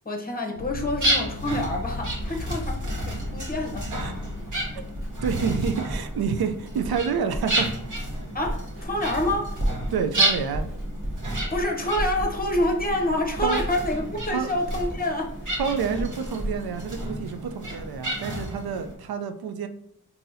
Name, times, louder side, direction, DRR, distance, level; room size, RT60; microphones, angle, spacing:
voice 1, 0.0-4.2 8.3-9.6 11.5-15.4, left 1 dB, 25° left, 2 dB, 0.8 m, -27 dB
sound 1, 0.6-7.9, left 3 dB, 70° left, 0.5 m, -38 dB
sound 2, 1.0-18.9, right 1 dB, 50° right, 1.3 m, -32 dB
Writing, 1.7-18.2 18.4-18.9, equal, 35° right, 1.1 m, -35 dB
voice 2, 5.2-7.7 9.9-10.7 13.4-13.6 14.3-14.5 15.6-19.7, right 6 dB, 75° right, 8 dB, 0.5 m, -28 dB
3.9 x 2.8 x 2.6 m, 0.72 s
wide cardioid pair, 65°, 38 cm